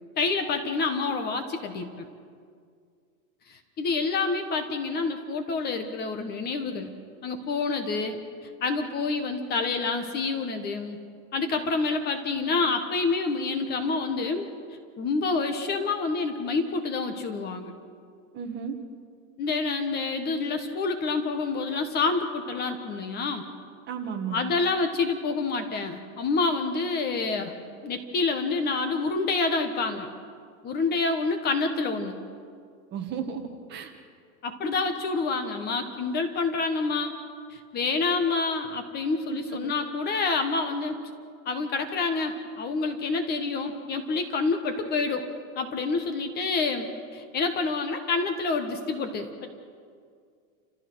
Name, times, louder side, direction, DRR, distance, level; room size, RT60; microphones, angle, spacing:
voice 1, 0.2-2.1 3.5-6.9 7.2-8.2 8.6-11.0 11.3-14.5 15.0-17.7 19.4-23.5 24.3-27.5 27.8-30.1 30.6-32.2 34.4-37.1 37.5-41.0 41.4-45.3 45.6-49.5, left 4 dB, 25° left, 7 dB, 1.3 m, -28 dB
voice 2, 18.3-18.7 23.9-24.5 32.9-33.9 39.3-39.7, right 7 dB, 25° right, 5 dB, 1.6 m, -34 dB
30.0 x 14.5 x 6.2 m, 2.2 s
supercardioid pair, 155°, 41 cm